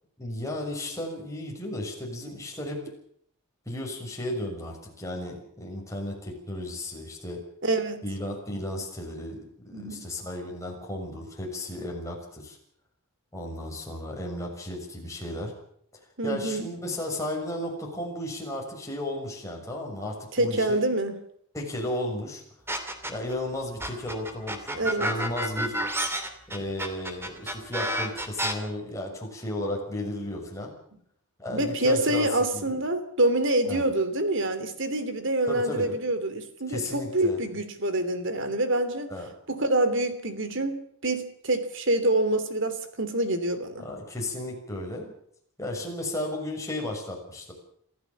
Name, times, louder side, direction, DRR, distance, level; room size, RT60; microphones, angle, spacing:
voice 1, 0.2-2.8 3.7-7.4 8.0-12.6 13.3-15.5 16.2-20.8 21.5-22.4 23.1-25.8 26.5-30.7 31.4-32.8 33.7-33.8 35.5-36.0 36.7-37.4 39.1-39.3 43.8-45.1 45.6-47.5, left 1 dB, 15° left, 0 dB, 6.6 m, -34 dB
voice 2, 7.6-8.1 9.7-10.1 16.2-16.7 20.3-21.1 24.7-25.2 31.5-39.1 39.5-43.8, right 1 dB, 60° right, 11 dB, 3.1 m, -26 dB
sound 1, 22.7-23.3 23.8-28.5, equal, 10° right, 2.7 m, -29 dB
26.5 x 15.0 x 7.2 m, 0.67 s
head